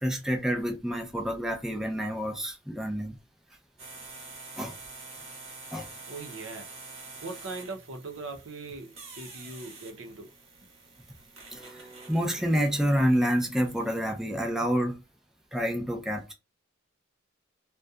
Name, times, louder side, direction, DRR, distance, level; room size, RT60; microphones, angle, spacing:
voice 1, 0.0-3.2 4.6-4.7 5.7-5.9 11.5-15.0 15.5-16.3, equal, ahead, 0.4 m, -28 dB
sound 1, 3.8-14.1, right 3 dB, 35° right, 1.1 m, -47 dB
voice 2, 6.0-6.7 7.2-10.3, right 3 dB, 75° right, 0.6 m, -40 dB
2.7 x 2.2 x 2.3 m
head